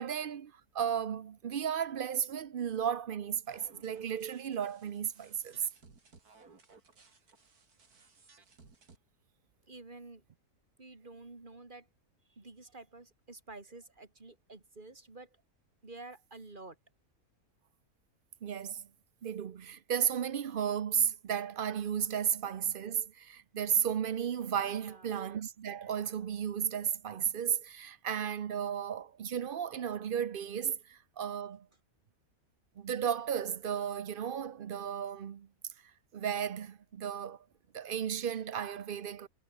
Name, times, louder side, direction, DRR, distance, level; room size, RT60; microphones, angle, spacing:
voice 1, 0.0-5.7 18.4-18.9 19.2-31.7 32.8-35.5 36.1-37.4 37.7-39.3, right 8 dB, 50° right, 0.7 m, -34 dB
sound 1, 3.4-9.0, right 4 dB, 85° right, 3.5 m, -60 dB
voice 2, 9.7-10.2 10.8-11.9 12.4-15.3 15.8-16.8 24.7-25.1, right 2 dB, 35° right, 2.8 m, -50 dB
omnidirectional pair, 1.6 m